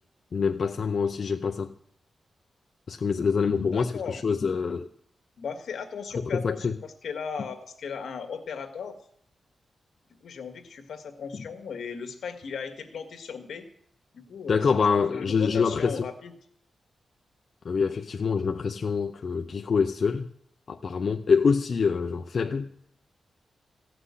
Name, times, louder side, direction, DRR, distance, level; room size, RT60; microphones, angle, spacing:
voice 1, 0.3-1.7 2.9-4.9 6.3-6.7 11.3-11.4 14.5-16.1 17.6-20.3 20.7-22.7, left 5 dB, 50° left, 0.6 m, -25 dB
voice 2, 3.6-4.2 5.4-9.0 10.2-13.7 14.1-14.6 15.1-16.3, left 6 dB, 75° left, 1.8 m, -37 dB
16.0 x 6.1 x 9.7 m
wide cardioid pair, 130°, 0 cm